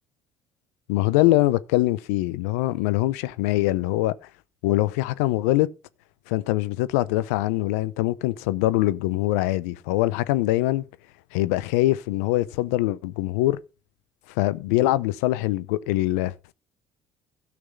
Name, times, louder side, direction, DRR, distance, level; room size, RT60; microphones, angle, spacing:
voice 1, 0.9-4.1 4.6-5.7 6.3-10.8 11.3-13.6 14.4-16.5, left 17 dB, 90° left, 0.6 m, -23 dB
13.0 x 6.1 x 5.5 m
supercardioid pair, 75°, 8 cm